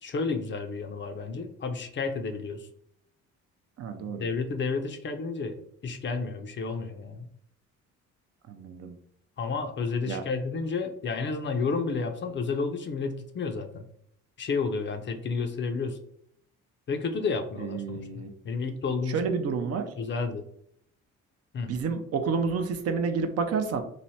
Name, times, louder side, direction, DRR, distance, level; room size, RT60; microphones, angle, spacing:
voice 1, 0.0-2.7 4.0-7.3 9.4-13.8 14.4-16.0 16.9-19.4 20.0-20.4 21.5-21.7, left 4 dB, 40° left, 6 dB, 0.4 m, -31 dB
voice 2, 3.8-4.3 8.5-9.0 10.1-10.2 17.6-18.3 19.1-19.9 21.7-23.8, right 5 dB, 55° right, 7 dB, 0.5 m, -29 dB
3.2 x 2.0 x 2.7 m, 0.68 s
cardioid pair, 90°, 30 cm